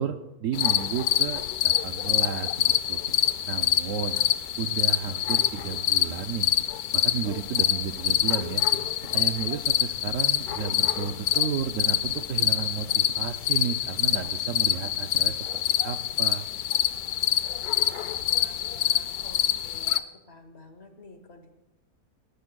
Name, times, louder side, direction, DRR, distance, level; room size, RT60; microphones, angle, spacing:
voice 1, 0.0-3.0 3.5-4.2 4.6-6.5 6.9-8.6 9.1-16.5, right 8 dB, 65° right, 7 dB, 0.8 m, -32 dB
sound 1, 0.5-20.0, left 11 dB, 75° left, 1.1 m, -26 dB
sound 2, 2.1-2.3 2.6-2.8 3.1-3.3 3.6-3.7 4.1-4.3 4.6-4.8 5.1-5.3 5.6-5.8 6.1-6.3 6.6-6.8 7.1-7.3 7.6-7.8 8.1-9.2 10.1-11.3 12.1-13.3 14.1-15.4, right 2 dB, 50° right, 1.7 m, -44 dB
voice 2, 17.7-19.4 19.6-21.5, left 2 dB, 45° left, 6 dB, 1.4 m, -50 dB
18.5 x 18.5 x 2.3 m, 1.0 s
omnidirectional pair, 1.7 m